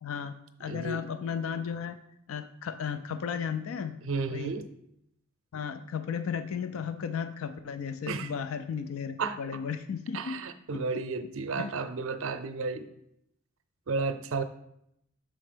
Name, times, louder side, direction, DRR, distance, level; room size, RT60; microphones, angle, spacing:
voice 1, 0.0-2.0 2.3-4.0 4.3-4.6 5.5-10.4 10.7-10.8 11.6-11.7, left 7 dB, 70° left, 9 dB, 0.4 m, -34 dB
voice 2, 0.7-1.0 4.1-4.7 8.1-8.3 9.2-9.4 10.1-12.9 13.9-14.4, right 4 dB, 65° right, 10 dB, 0.6 m, -32 dB
6.3 x 4.4 x 5.0 m, 0.77 s
head